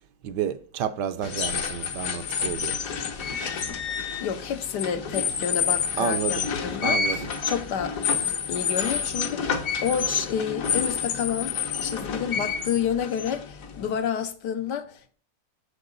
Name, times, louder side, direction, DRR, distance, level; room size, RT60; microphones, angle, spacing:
voice 1, 0.2-2.8 6.0-6.3 6.8-7.2, right 8 dB, 75° right, 1.2 m, -30 dB
sound 1, 1.2-13.9, left 6 dB, 55° left, 1.2 m, -29 dB
voice 2, 4.2-8.0 8.5-15.1, left 8 dB, 70° left, 1.4 m, -29 dB
7.2 x 6.7 x 3.8 m
omnidirectional pair, 1.9 m